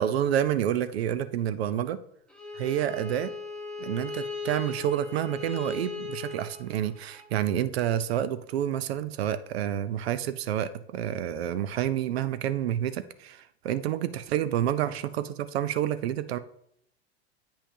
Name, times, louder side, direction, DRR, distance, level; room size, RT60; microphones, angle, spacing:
voice 1, 0.0-2.0 2.5-3.3 3.8-16.4, right 11 dB, 65° right, 14 dB, 0.6 m, -29 dB
Bowed string instrument, 2.3-7.3, left 4 dB, 5° left, 1.2 m, -38 dB
8.7 x 5.7 x 2.8 m, 0.72 s
hypercardioid pair, 105°, 33 cm